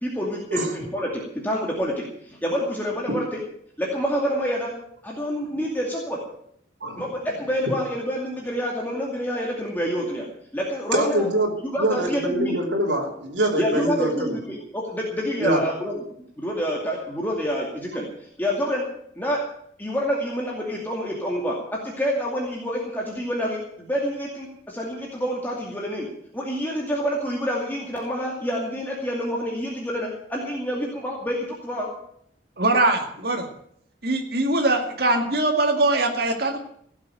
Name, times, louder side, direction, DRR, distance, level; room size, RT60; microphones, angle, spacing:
voice 1, 0.0-3.4 3.8-4.7 5.0-6.2 7.0-10.3 10.5-11.3 11.6-12.6 13.6-16.0 16.4-18.1 18.4-18.8 19.2-19.4 19.8-26.1 26.3-31.9, equal, 10° left, -2 dB, 2.3 m, -27 dB
voice 2, 10.9-14.3 15.4-15.6, right 1 dB, 75° right, -2 dB, 3.2 m, -24 dB
voice 3, 32.6-33.5 34.0-36.6, right 2 dB, 55° right, 2 dB, 2.1 m, -22 dB
16.5 x 7.3 x 9.0 m, 0.69 s
head